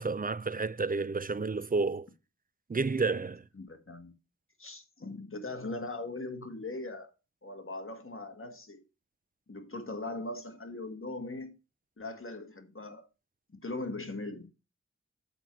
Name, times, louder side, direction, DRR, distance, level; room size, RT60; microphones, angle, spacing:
voice 1, 0.0-2.1 2.7-3.4, right 4 dB, 30° right, 0.4 m, -30 dB
voice 2, 3.6-4.1 4.6-7.1 7.4-8.8 9.5-11.6 12.0-13.1 13.5-14.5, left 2 dB, 45° left, 1.8 m, -40 dB
7.8 x 4.6 x 5.8 m
wide cardioid pair, 50°, 29 cm